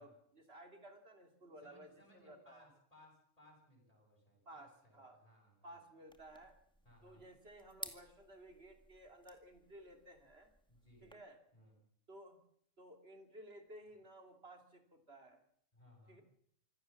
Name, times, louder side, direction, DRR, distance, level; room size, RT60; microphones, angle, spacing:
voice 1, 0.0-2.7 4.5-5.2 5.6-6.6 7.0-10.5 11.0-11.4 12.1-12.4 12.8-15.4 16.1-16.2, right 1 dB, 40° right, 5 dB, 3.4 m, -56 dB
voice 2, 1.6-5.8 6.8-7.2 10.7-11.1 11.5-11.7 15.7-16.2, left 1 dB, 25° left, -1 dB, 7.8 m, -65 dB
sound 1, 6.1-11.1, equal, 5° left, 2.0 m, -55 dB
25.5 x 16.0 x 7.3 m, 0.67 s
omnidirectional pair, 1.5 m